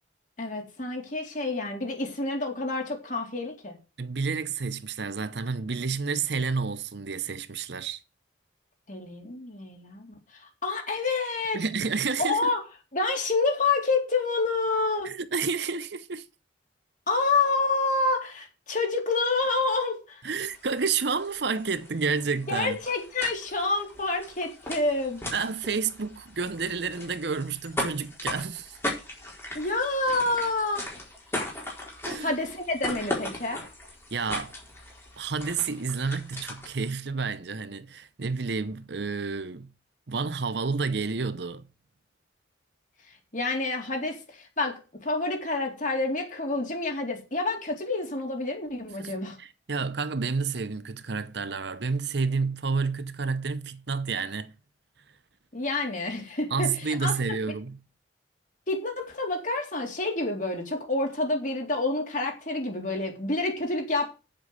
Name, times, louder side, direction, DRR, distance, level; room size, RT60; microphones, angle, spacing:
voice 1, 0.4-3.8 8.9-10.1 10.3-11.6 12.2-12.6 12.9-15.1 17.1-20.2 22.5-25.2 29.5-30.8 32.2-33.6 43.3-49.4 55.5-57.2 58.7-64.1, left 3 dB, 40° left, 3.8 m, -28 dB
voice 2, 4.0-8.0 11.5-12.5 15.0-16.3 20.2-22.8 25.3-28.8 32.1-32.3 34.1-34.5 35.2-39.7 40.1-41.6 49.0-54.5 56.5-57.8, right 5 dB, 60° right, 0.8 m, -30 dB
sound 1, 20.4-36.9, left 1 dB, 15° left, 4.4 m, -38 dB
8.4 x 7.8 x 7.9 m
head